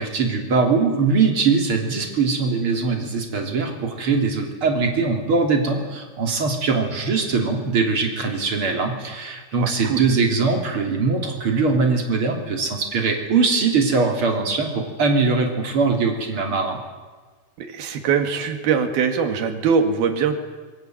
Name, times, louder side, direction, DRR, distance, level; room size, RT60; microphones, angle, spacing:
voice 1, 0.0-16.8, right 4 dB, 35° right, 2 dB, 3.7 m, -21 dB
voice 2, 9.6-10.0 17.6-20.4, right 6 dB, 65° right, 7 dB, 3.8 m, -22 dB
26.5 x 24.0 x 7.9 m, 1.4 s
omnidirectional pair, 4.8 m